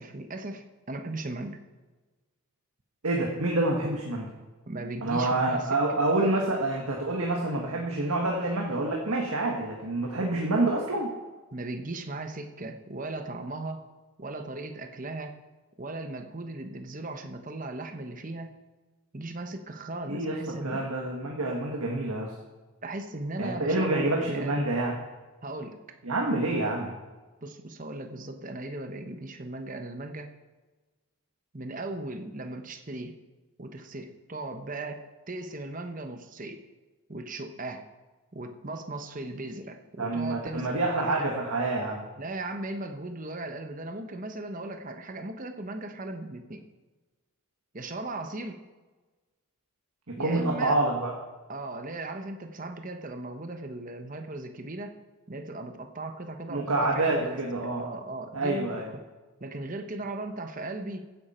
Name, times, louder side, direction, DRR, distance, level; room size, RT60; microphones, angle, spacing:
voice 1, 0.0-1.6 4.7-6.0 11.5-13.8 14.2-15.4 15.8-18.6 19.1-20.8 22.8-24.6 25.4-25.8 27.4-30.3 31.5-33.2 33.6-36.6 37.1-37.9 38.3-40.7 41.1-41.3 42.2-46.6 47.7-48.6 50.2-50.8 51.5-54.9 55.3-57.4 57.8-59.0 59.4-61.1, right 2 dB, 35° right, 7 dB, 1.0 m, -37 dB
voice 2, 3.0-4.3 5.0-11.1 20.1-22.3 23.4-24.9 26.0-26.9 40.0-42.0 50.1-51.1 56.5-57.8 58.3-58.9, right 2 dB, 80° right, 0 dB, 1.6 m, -27 dB
15.5 x 10.0 x 4.4 m, 1.3 s
head